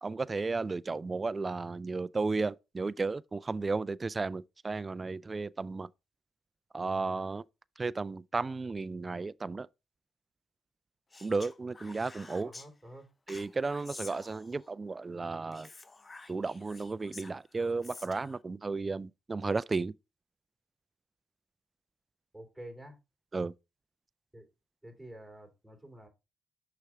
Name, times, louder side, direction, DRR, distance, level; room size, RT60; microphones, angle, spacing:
voice 1, 0.0-5.9 6.7-7.4 7.8-9.7 11.2-12.5 13.3-15.7 16.3-19.9 23.3-23.5, right 3 dB, 25° right, 0.3 m, -34 dB
Speech, 11.1-12.7 13.3-14.7 15.5-18.4, left 3 dB, 25° left, 0.7 m, -50 dB
voice 2, 12.4-13.1 22.3-22.9 24.3-24.4 24.8-26.1, right 1 dB, 5° right, 3.1 m, -49 dB
6.5 x 5.8 x 3.6 m
cardioid pair, 90°, 0 cm